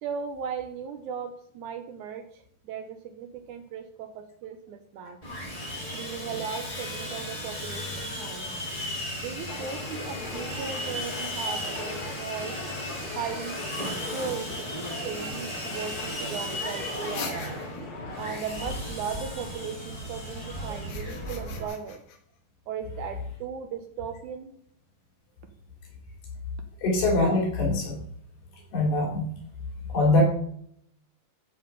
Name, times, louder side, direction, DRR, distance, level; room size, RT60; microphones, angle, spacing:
voice 1, 0.0-5.2 5.9-8.5 9.2-12.6 13.2-13.6 14.1-14.7 15.0-17.4 18.2-22.0 22.7-24.5, right 6 dB, 75° right, 7 dB, 2.1 m, -37 dB
Sawing, 5.2-21.7, equal, 10° left, 2.5 m, -35 dB
sound 1, 9.5-18.4, left 3 dB, 50° left, 2.0 m, -41 dB
sound 2, 17.1-18.0 20.7-22.2, left 6 dB, 70° left, 2.7 m, -41 dB
voice 2, 26.8-28.0 28.7-29.3 29.9-30.2, left 2 dB, 85° left, -2 dB, 4.5 m, -23 dB
13.0 x 4.5 x 5.5 m, 0.65 s
omnidirectional pair, 3.7 m